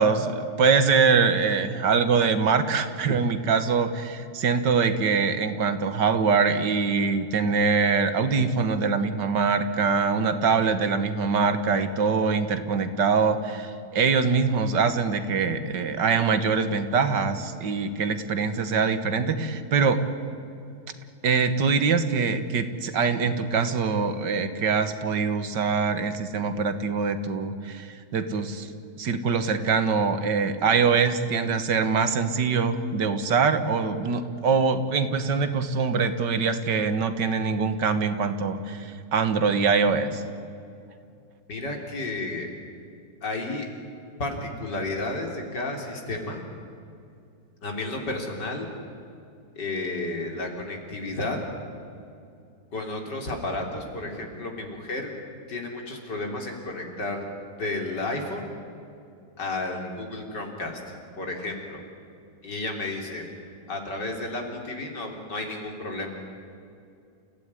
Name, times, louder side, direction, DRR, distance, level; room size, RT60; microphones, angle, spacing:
voice 1, 0.0-20.0 21.2-28.7 29.0-40.2, right 5 dB, 75° right, 10 dB, 2.0 m, -23 dB
voice 2, 41.5-42.5 43.2-43.7 44.2-46.4 47.6-48.7 49.6-51.4 52.7-55.1 55.5-57.3 57.6-58.4 59.4-61.8 62.4-63.2 63.7-66.1, left 2 dB, 70° left, 2 dB, 4.1 m, -32 dB
29.0 x 16.0 x 9.8 m, 2.6 s
omnidirectional pair, 1.9 m